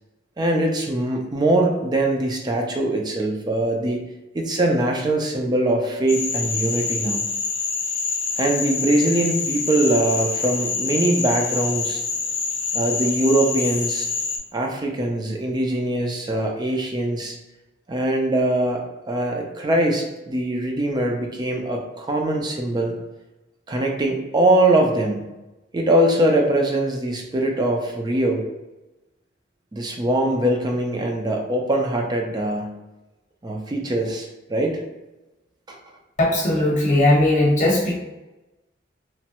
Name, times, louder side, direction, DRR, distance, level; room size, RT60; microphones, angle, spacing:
voice 1, 0.4-4.0 4.3-7.3 8.4-12.0 12.7-14.1 14.5-17.3 17.9-22.9 23.7-25.2 25.7-28.4 29.7-32.8 33.4-34.8 35.7-35.8, right 1 dB, 20° right, 1 dB, 0.4 m, -22 dB
Frog, 6.1-14.4, left 4 dB, 75° left, 0.5 m, -26 dB
voice 2, 36.2-37.9, left 1 dB, 40° left, -2 dB, 0.9 m, -18 dB
3.1 x 2.2 x 2.8 m, 1.0 s
head